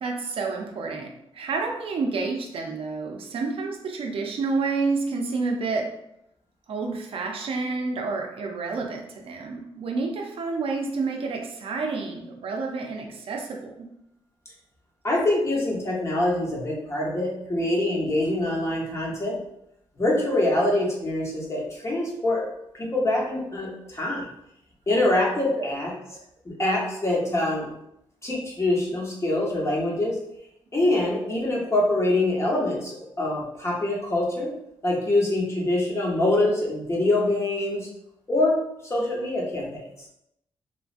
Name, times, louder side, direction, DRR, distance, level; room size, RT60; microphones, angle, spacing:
voice 1, 0.0-5.9 6.7-13.9 24.1-24.2 25.6-25.8 26.1-26.2, right 4 dB, 65° right, 2 dB, 0.5 m, -29 dB
voice 2, 15.0-19.3 20.0-22.4 22.8-24.2 24.9-25.9 26.4-27.7 28.2-30.2 30.7-34.5 34.8-37.9 38.3-38.6 38.8-39.8, left 1 dB, 30° left, -3 dB, 0.9 m, -24 dB
3.1 x 2.4 x 2.4 m, 0.79 s
cardioid pair, 90°, 10 cm